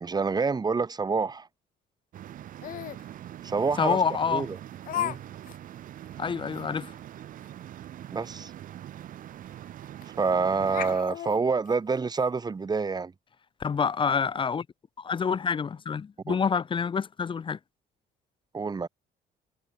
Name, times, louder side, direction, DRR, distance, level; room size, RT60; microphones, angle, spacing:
voice 1, 0.0-1.5 3.4-4.0 4.3-4.6 4.9-5.2 8.1-8.5 10.2-13.1 16.3-16.4 18.5-18.9, right 4 dB, 25° right, 1.6 m, -27 dB
sound 1, 2.1-11.0, right 12 dB, 55° right, 0.7 m, -43 dB
Laughter, 2.6-3.0 3.9-4.0 4.9-5.2 5.4-5.6 6.1-6.2 6.5-6.6 8.6-8.7 9.0-9.1 10.0-10.3 10.6-12.3, left 11 dB, 55° left, 0.9 m, -34 dB
voice 2, 3.8-4.5 6.2-6.9 13.6-14.6 15.0-17.6, left 6 dB, 30° left, 0.8 m, -27 dB
cardioid pair, 110°, 17 cm